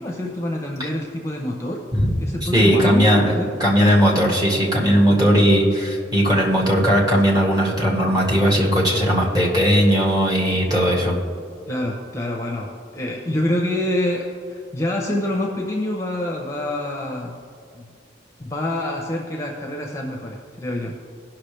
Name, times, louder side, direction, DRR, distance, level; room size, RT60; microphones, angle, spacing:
voice 1, 0.0-1.8 2.2-3.1 3.4-3.5 11.7-17.4 17.7-17.9 18.4-21.0, left 1 dB, 15° left, 0 dB, 0.7 m, -26 dB
voice 2, 2.4-3.3 3.6-11.1, equal, 20° right, -4 dB, 1.9 m, -18 dB
17.5 x 5.9 x 3.3 m, 2.2 s
head